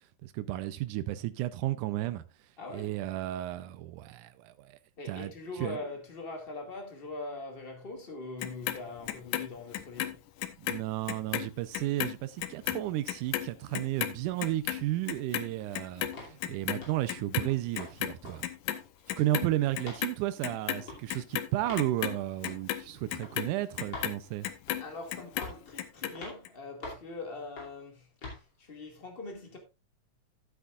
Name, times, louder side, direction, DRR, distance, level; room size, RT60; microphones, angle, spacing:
voice 1, 0.2-2.2 2.7-4.8 5.1-5.3 5.6-5.8 10.6-18.4 19.2-24.5, right 15 dB, 85° right, 2.2 m, -33 dB
voice 2, 2.6-3.0 5.0-10.2 19.3-19.4 24.8-29.6, left 3 dB, 20° left, 2.0 m, -42 dB
Clock, 8.4-10.8 11.1-17.5 17.7-18.8 19.1-20.1 20.4-24.8 25.1-26.1 26.5-26.6, left 12 dB, 85° left, 2.3 m, -34 dB
sound 1, 16.1-16.4 16.8-17.1 17.5-17.9 18.2-18.4 18.7-19.4 19.8-20.1 20.8-21.0 21.7-21.9 22.4-22.6 23.2-23.4 23.9-24.1 24.7-25.0 25.4-25.7 26.2-26.4 26.8-27.1 27.6-27.8 28.2-28.4, left 3 dB, 40° left, 3.2 m, -44 dB
14.5 x 8.2 x 2.4 m
omnidirectional pair, 3.6 m